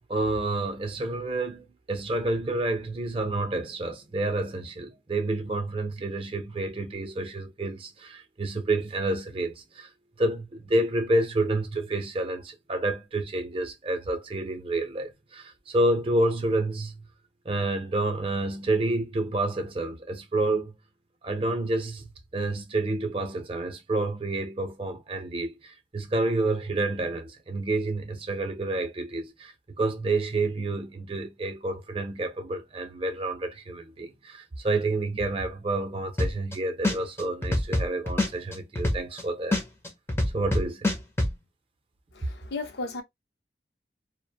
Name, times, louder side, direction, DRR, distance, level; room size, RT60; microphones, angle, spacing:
voice 1, 0.1-9.9 10.2-17.1 17.4-20.8 21.2-39.6 40.3-40.9, right 2 dB, 30° right, 0.5 m, -29 dB
sound 1, 36.2-36.5 36.8-39.2 39.5-41.3, left 1 dB, 15° left, 0.5 m, -24 dB
voice 2, 42.1-43.0, left 3 dB, 65° left, 0.6 m, -34 dB
2.5 x 2.0 x 2.6 m
head